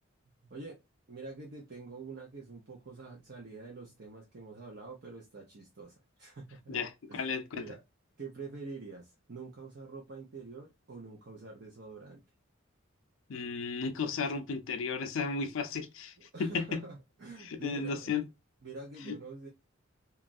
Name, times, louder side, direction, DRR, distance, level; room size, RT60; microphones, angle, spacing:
voice 1, 0.4-0.8 1.1-6.8 7.1-7.8 8.2-12.2 16.2-18.1 18.6-19.5, right 3 dB, 55° right, 0.6 m, -46 dB
voice 2, 6.7-7.4 13.3-16.1 16.4-16.8 17.6-18.2 19.1-19.2, left 5 dB, 75° left, 0.5 m, -34 dB
3.0 x 2.4 x 2.4 m
head